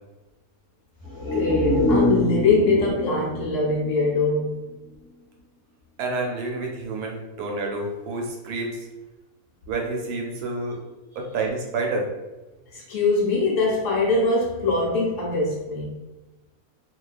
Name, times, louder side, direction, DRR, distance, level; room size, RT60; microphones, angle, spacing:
sound 1, 1.0-4.7 5.1-5.2, left 1 dB, 20° left, 0.6 m, -26 dB
voice 1, 1.3-4.6 12.7-15.9, left 3 dB, 65° left, -3 dB, 0.8 m, -22 dB
voice 2, 6.0-8.8 9.7-10.8 11.2-12.1, right 3 dB, 90° right, 0 dB, 1.1 m, -29 dB
2.4 x 2.2 x 2.3 m, 1.1 s
omnidirectional pair, 1.6 m